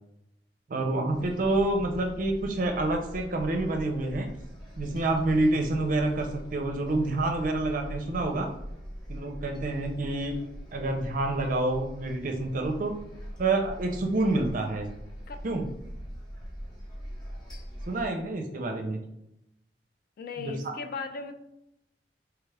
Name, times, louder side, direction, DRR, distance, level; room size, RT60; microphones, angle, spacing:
voice 1, 0.7-4.3 4.8-8.5 9.1-10.4 10.7-12.9 13.4-14.9 15.4-15.7 17.9-19.0 20.4-20.5, right 2 dB, 50° right, 3 dB, 0.5 m, -28 dB
sound 1, 1.1-18.1, equal, 25° left, 0.8 m, -42 dB
voice 2, 20.2-21.3, left 4 dB, 55° left, 7 dB, 0.3 m, -37 dB
3.4 x 2.4 x 3.2 m, 0.81 s
head